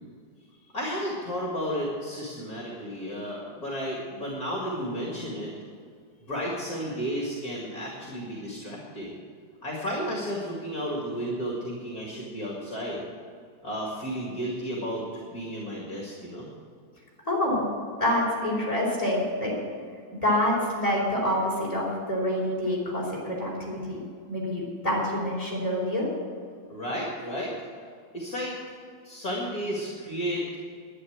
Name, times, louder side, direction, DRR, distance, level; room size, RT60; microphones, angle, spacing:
voice 1, 0.7-5.5 6.2-9.2 9.6-13.0 13.6-16.5 26.7-27.5 28.1-28.5 29.0-30.4, equal, 50° left, -3 dB, 2.6 m, -32 dB
voice 2, 17.2-17.7 18.0-19.6 20.1-26.1, left 1 dB, 15° left, -4 dB, 4.3 m, -27 dB
11.0 x 10.0 x 7.9 m, 2.1 s
omnidirectional pair, 2.1 m